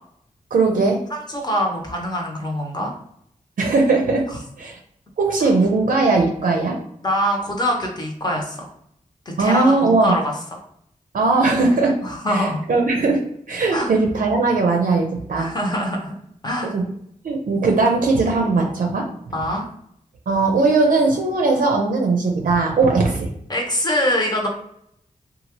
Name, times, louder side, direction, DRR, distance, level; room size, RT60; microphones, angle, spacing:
voice 1, 0.5-1.0 3.6-4.2 4.6-4.8 5.2-6.8 9.4-10.1 11.1-12.0 12.3-13.2 13.5-15.5 16.7-16.8 17.2-19.0 20.3-23.3, right 3 dB, 75° right, 1 dB, 0.5 m, -19 dB
voice 2, 1.1-2.9 4.3-4.4 5.4-5.5 7.0-8.7 9.4-10.3 12.0-12.6 13.7-13.9 15.3-16.2 16.4-16.7 19.3-19.6 23.5-24.5, equal, 30° left, 0 dB, 0.9 m, -24 dB
2.8 x 2.4 x 3.0 m, 0.72 s
wide cardioid pair, 70°, 14 cm